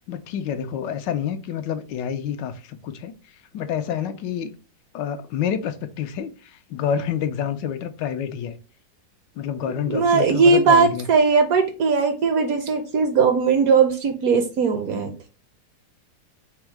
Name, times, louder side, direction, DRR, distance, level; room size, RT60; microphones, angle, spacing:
voice 1, 0.1-3.1 3.5-4.5 4.9-8.6 9.4-11.1, left 8 dB, 85° left, 1.2 m, -28 dB
voice 2, 9.9-15.3, right 5 dB, 65° right, 0.9 m, -19 dB
4.5 x 2.0 x 4.5 m
omnidirectional pair, 1.9 m